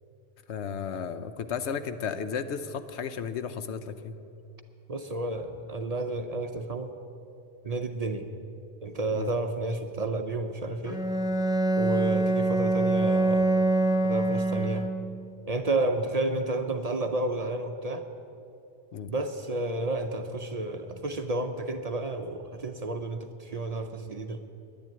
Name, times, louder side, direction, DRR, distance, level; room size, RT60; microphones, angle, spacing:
voice 1, 0.5-4.2 9.1-9.3 18.9-19.1, left 7 dB, 80° left, 10 dB, 1.0 m, -34 dB
voice 2, 4.9-6.9 7.6-8.3 8.8-11.0 11.8-13.5 14.0-14.9 15.5-18.0 19.1-24.4, right 2 dB, 45° right, 6 dB, 0.6 m, -31 dB
Bowed string instrument, 10.8-15.3, right 2 dB, 5° right, 0.6 m, -25 dB
10.5 x 10.5 x 9.4 m, 2.7 s
omnidirectional pair, 1.1 m